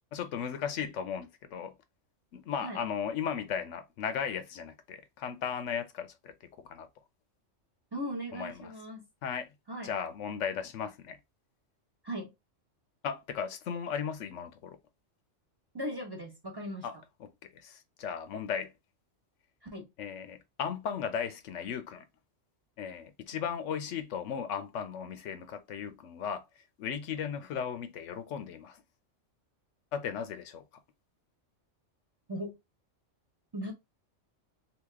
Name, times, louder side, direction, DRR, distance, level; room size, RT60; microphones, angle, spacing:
voice 1, 0.1-1.7 2.3-6.9 8.3-8.7 9.2-9.5 9.8-11.2 13.0-14.8 16.8-17.0 17.2-18.7 20.0-22.0 22.8-26.4 26.8-28.8 29.9-30.6, left 7 dB, 85° left, 1.0 m, -36 dB
voice 2, 7.9-9.0 9.7-9.9 12.0-12.3 15.7-16.9 19.6-19.9 32.3-32.6 33.5-33.7, equal, 20° right, 1.1 m, -38 dB
3.0 x 2.8 x 3.4 m
omnidirectional pair, 1.2 m